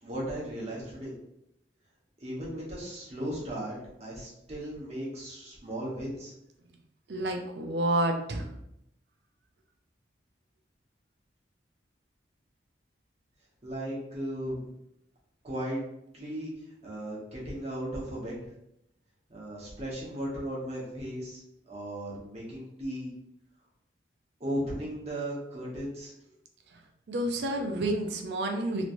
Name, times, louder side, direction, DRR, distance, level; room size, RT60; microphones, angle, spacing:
voice 1, 0.0-1.1 2.2-6.3 13.6-14.6 15.4-15.8 16.1-16.5 16.8-18.4 19.3-21.4 21.7-23.1 24.4-26.1, right 1 dB, 35° right, -5 dB, 1.1 m, -36 dB
voice 2, 7.1-8.5 27.1-28.9, right 1 dB, 75° right, 3 dB, 0.5 m, -29 dB
3.0 x 3.0 x 2.6 m, 0.79 s
head